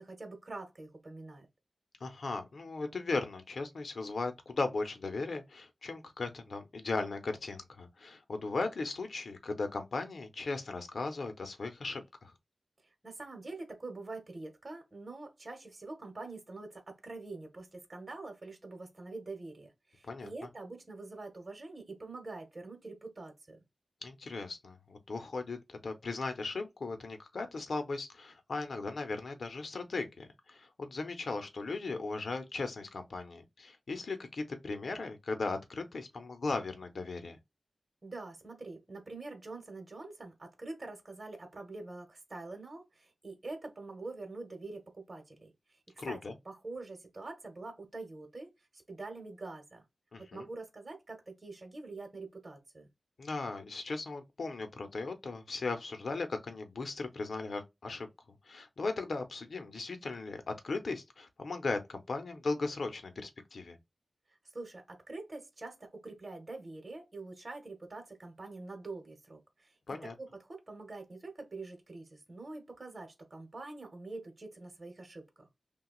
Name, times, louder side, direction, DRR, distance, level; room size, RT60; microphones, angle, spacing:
voice 1, 0.0-1.5 13.0-23.6 38.0-45.5 46.0-46.2 46.4-48.5 48.7-49.8 50.3-52.9 64.5-69.7 70.0-75.4, right 3 dB, 40° right, 1.1 m, -45 dB
voice 2, 2.0-12.3 20.0-20.3 24.0-37.4 46.0-46.3 50.1-50.5 53.2-58.1 58.5-63.8 69.9-70.1, left 3 dB, 70° left, 0.7 m, -37 dB
5.8 x 2.3 x 2.4 m
wide cardioid pair, 85°, 0 cm